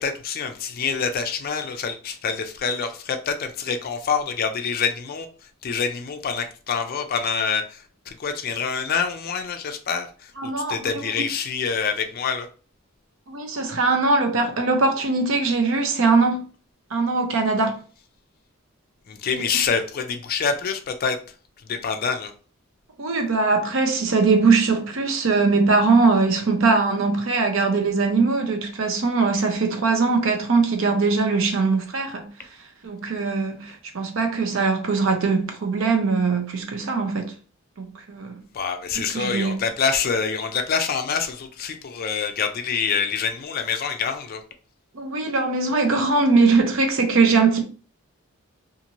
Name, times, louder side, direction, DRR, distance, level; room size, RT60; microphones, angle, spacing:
voice 1, 0.0-5.3 5.6-7.8 8.1-10.1 10.7-12.5 19.1-21.2 21.7-22.3 38.5-44.4, left 6 dB, 45° left, 0.4 m, -26 dB
voice 2, 10.4-11.3 13.3-16.5 16.9-17.8 19.3-19.4 23.0-32.3 32.8-37.3 37.8-38.3 39.0-39.6 44.9-47.6, right 4 dB, 60° right, 0.6 m, -21 dB
2.6 x 2.5 x 2.9 m
head